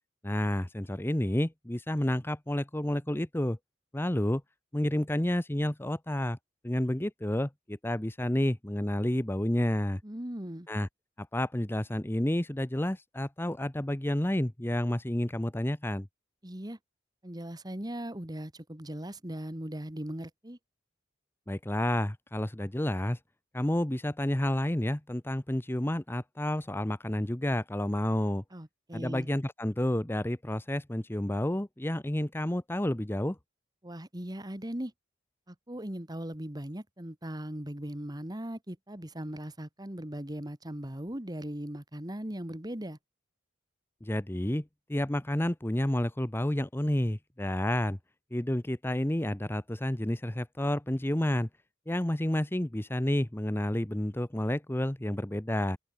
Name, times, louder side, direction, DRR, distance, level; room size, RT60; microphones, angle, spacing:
voice 1, 0.2-3.6 3.9-4.4 4.7-6.4 6.6-10.0 10.7-10.9 11.2-16.1 21.5-23.2 23.5-28.4 28.9-33.4 44.0-48.0 48.3-51.5 51.9-55.8, left 1 dB, 10° left, 0.8 m, -30 dB
voice 2, 10.0-10.7 16.4-16.8 17.2-20.6 28.5-29.3 33.8-34.9 35.5-43.0, right 1 dB, 20° right, 2.0 m, -39 dB
open air
head